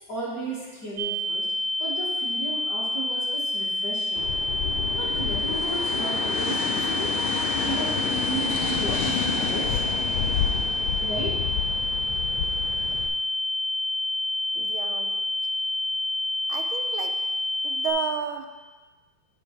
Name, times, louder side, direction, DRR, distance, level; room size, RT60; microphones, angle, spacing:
voice 1, 0.1-1.5 1.8-4.3 4.9-7.1 7.6-9.8 11.0-11.4, right 2 dB, 45° left, -6 dB, 2.4 m, -34 dB
sound 1, 1.0-17.9, left 1 dB, 60° right, 0.9 m, -28 dB
sound 2, 4.2-13.1, left 6 dB, 80° left, 1.5 m, -30 dB
voice 2, 14.5-15.2 16.5-17.2 17.6-18.5, right 8 dB, 80° right, 5 dB, 1.4 m, -32 dB
8.9 x 5.2 x 4.5 m, 1.3 s
omnidirectional pair, 2.2 m